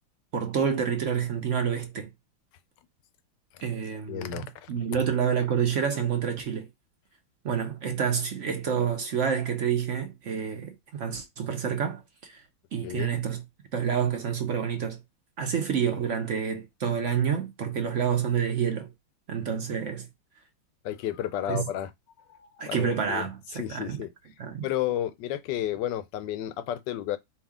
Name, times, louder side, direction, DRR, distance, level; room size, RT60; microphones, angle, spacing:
voice 1, 0.3-2.1 3.6-4.4 4.7-6.7 7.4-12.4 12.7-13.4 13.7-15.0 15.4-18.9 19.3-20.1 21.5-21.7 22.6-24.0 24.4-24.7, right 7 dB, 60° right, 0.8 m, -28 dB
voice 2, 4.1-4.7 12.8-13.1 20.8-21.9 22.3-24.1 24.6-27.2, left 12 dB, 70° left, 1.1 m, -32 dB
4.7 x 3.0 x 3.6 m
omnidirectional pair, 2.2 m